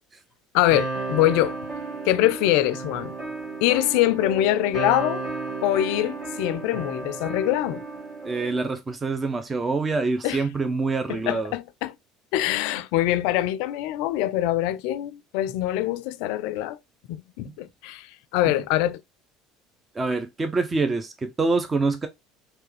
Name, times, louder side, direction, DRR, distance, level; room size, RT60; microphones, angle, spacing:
voice 1, 0.5-1.6 2.0-3.1 3.6-5.2 5.6-7.8 10.2-10.4 11.1-12.0 12.3-16.8 17.1-19.0, left 14 dB, 70° left, 0.4 m, -24 dB
sound 1, 0.7-8.7, right 3 dB, 55° right, 2.4 m, -33 dB
voice 2, 8.2-11.5 19.9-22.1, right 3 dB, 25° right, 0.6 m, -25 dB
3.3 x 3.0 x 3.3 m
hypercardioid pair, 75°, 0 cm